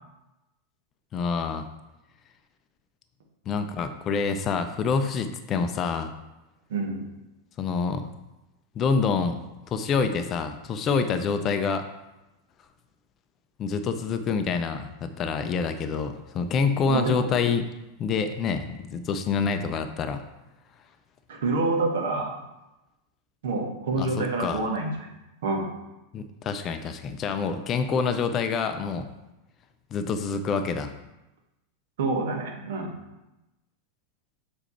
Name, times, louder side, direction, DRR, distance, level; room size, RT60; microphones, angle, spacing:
voice 1, 1.1-1.7 3.5-6.1 7.6-8.1 8.7-11.9 13.6-17.7 18.0-20.2 24.0-24.6 26.1-29.1 29.9-30.9, left 5 dB, 30° left, 8 dB, 0.5 m, -27 dB
voice 2, 6.7-7.0 16.9-17.3 21.3-22.3 23.4-25.1 25.4-25.7 32.0-32.9, right 3 dB, 60° right, 1 dB, 1.3 m, -27 dB
7.0 x 4.4 x 4.3 m, 0.97 s
figure-of-eight pair, 90°, 0 cm